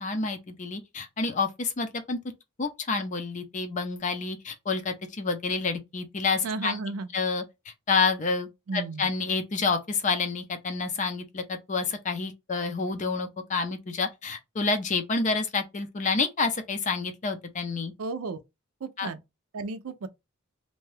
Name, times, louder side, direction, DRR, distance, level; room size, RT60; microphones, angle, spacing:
voice 1, 0.0-2.2 2.6-6.8 7.1-7.4 7.9-17.9 19.0-19.1, left 4 dB, 35° left, 0.5 m, -29 dB
voice 2, 6.4-7.1 8.7-9.1 18.0-18.4 18.8-19.2 19.5-20.1, right 3 dB, 75° right, 0.4 m, -33 dB
2.7 x 2.2 x 3.1 m
head